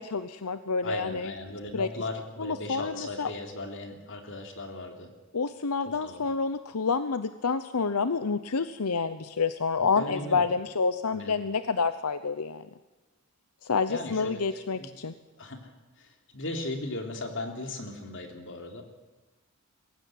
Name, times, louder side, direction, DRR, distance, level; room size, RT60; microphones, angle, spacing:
voice 1, 0.0-1.3 1.7-1.9 2.4-3.3 5.3-12.6 13.6-15.1, left 4 dB, 90° left, 11 dB, 0.8 m, -28 dB
voice 2, 0.8-5.1 6.0-6.2 9.8-10.4 11.1-11.4 13.9-14.4 14.8-14.9 15.4-18.8, left 2 dB, 60° left, 4 dB, 3.4 m, -37 dB
22.5 x 16.0 x 9.4 m, 1.1 s
head